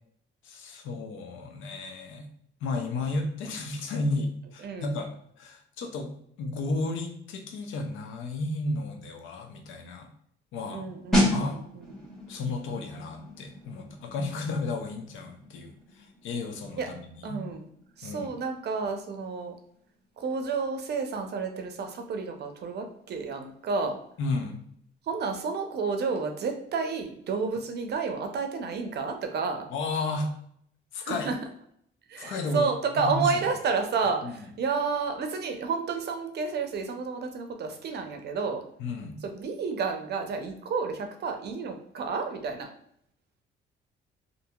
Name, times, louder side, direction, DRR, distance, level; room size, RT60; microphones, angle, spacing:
voice 1, 0.4-2.3 2.6-5.1 5.4-10.1 10.5-10.9 11.3-11.6 12.3-17.4 18.0-18.3 24.2-24.6 29.7-30.3 30.9-31.3 32.2-32.7 33.0-33.4 34.2-34.4 38.8-39.2, left 3 dB, 80° left, 5 dB, 0.5 m, -33 dB
voice 2, 4.6-5.0 10.7-11.6 12.0-12.1 16.8-16.9 17.2-17.7 18.0-19.6 20.2-24.0 25.1-29.7 31.0-31.4 32.1-38.6 39.2-42.7, right 5 dB, 55° right, 5 dB, 0.5 m, -31 dB
sound 1, 11.1-21.6 21.9-22.2, left 1 dB, ahead, 1.1 m, -33 dB
2.8 x 2.6 x 2.2 m, 0.68 s
cardioid pair, 90°, 20 cm